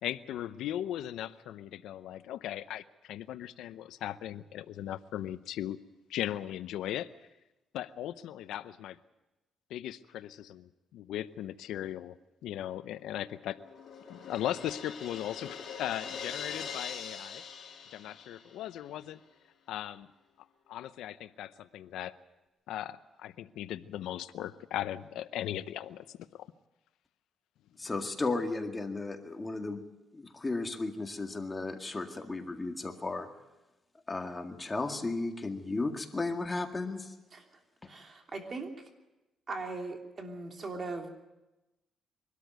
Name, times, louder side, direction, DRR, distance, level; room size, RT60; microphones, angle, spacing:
voice 1, 0.0-5.8 6.1-7.1 7.7-9.0 9.7-12.2 12.4-13.6 14.1-17.4 17.9-19.2 19.7-20.1 20.7-22.2 22.7-26.5, left 12 dB, 90° left, 14 dB, 0.7 m, -38 dB
Crash cymbal, 13.0-18.7, left 6 dB, 55° left, 4.6 m, -43 dB
voice 2, 27.8-29.8 30.1-33.3 34.1-37.1, left 3 dB, 20° left, 4 dB, 2.0 m, -34 dB
voice 3, 37.9-38.7 39.5-41.1, right 3 dB, 40° right, 3 dB, 3.1 m, -39 dB
23.5 x 13.0 x 9.2 m, 1.0 s
cardioid pair, 105°, 0 cm